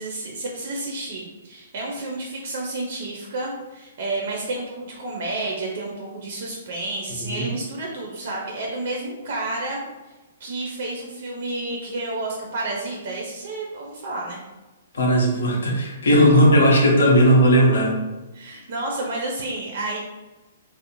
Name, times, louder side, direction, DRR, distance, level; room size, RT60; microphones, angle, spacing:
voice 1, 0.0-9.8 10.4-14.4 18.3-20.0, right 2 dB, 50° right, -1 dB, 0.4 m, -30 dB
voice 2, 14.9-18.0, equal, 80° left, -2 dB, 0.8 m, -16 dB
2.5 x 2.0 x 2.8 m, 1.1 s
hypercardioid pair, 170°, 0 cm